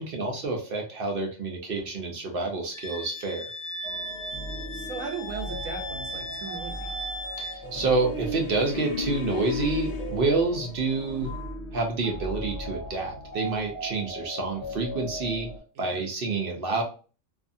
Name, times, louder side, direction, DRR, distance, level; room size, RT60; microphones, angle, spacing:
voice 1, 0.0-3.5 7.4-11.3 11.7-15.5 15.8-16.8, right 3 dB, 55° right, 0.7 m, -28 dB
Wind instrument woodwind instrument, 2.7-7.6, equal, 85° left, 1.2 m, -37 dB
sound 1, 3.8-15.6, right 1 dB, 35° left, 0.9 m, -38 dB
voice 2, 4.7-7.0 15.7-16.0, right 5 dB, 90° right, 1.1 m, -37 dB
sound 2, 7.6-11.6, left 3 dB, 65° left, 0.5 m, -35 dB
2.7 x 2.5 x 2.5 m
omnidirectional pair, 1.3 m